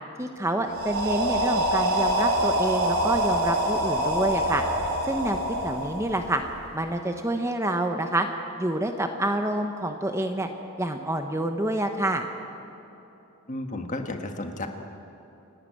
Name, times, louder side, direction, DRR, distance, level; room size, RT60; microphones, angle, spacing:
voice 1, 0.2-4.6 5.0-5.4 5.6-6.4 6.7-8.3 8.6-10.5 10.8-12.3, right 1 dB, 15° right, 5 dB, 0.9 m, -27 dB
sound 1, 0.7-6.6, right 1 dB, 75° right, 3.1 m, -25 dB
voice 2, 13.5-14.7, left 2 dB, 35° left, 4 dB, 1.7 m, -32 dB
29.0 x 11.5 x 9.3 m, 3.0 s
head